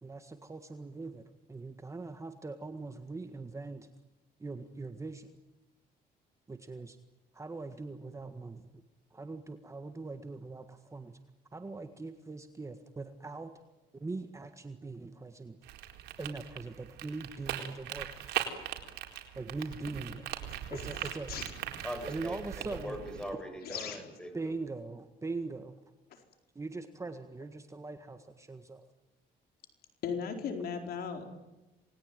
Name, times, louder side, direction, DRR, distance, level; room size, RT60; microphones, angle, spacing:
voice 1, 0.0-3.9 4.4-5.3 6.5-7.0 7.3-8.7 9.1-11.2 11.5-13.5 14.0-15.6 16.2-18.2 19.4-20.3 20.7-21.3 22.1-23.0 24.3-25.8 26.6-28.8, right 3 dB, 15° right, 8 dB, 1.7 m, -41 dB
sound 1, 15.6-23.3, right 11 dB, 80° right, 4.2 m, -40 dB
voice 2, 20.7-21.5 23.6-24.0 30.0-31.3, left 6 dB, 65° left, 5 dB, 4.4 m, -37 dB
voice 3, 21.8-24.5, equal, 5° left, 6 dB, 7.9 m, -41 dB
27.5 x 21.0 x 9.2 m, 1.1 s
cardioid pair, 110°, 17 cm